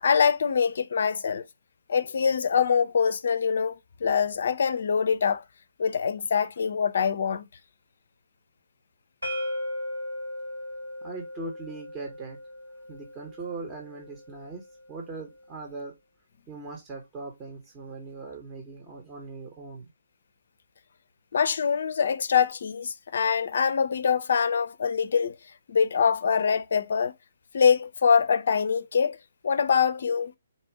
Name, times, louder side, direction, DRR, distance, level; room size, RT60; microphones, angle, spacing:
voice 1, 0.0-1.4 1.9-5.4 5.8-7.4 21.3-25.4 25.7-27.1 27.5-29.2 29.4-30.3, left 6 dB, 55° left, 0.5 m, -24 dB
sound 1, 9.2-15.0, left 1 dB, 80° right, 2.0 m, -37 dB
voice 2, 11.0-12.4 12.9-14.6 14.9-15.9 16.5-19.9, right 3 dB, 20° right, 0.9 m, -40 dB
4.1 x 2.5 x 4.7 m
figure-of-eight pair, 135°, 0 cm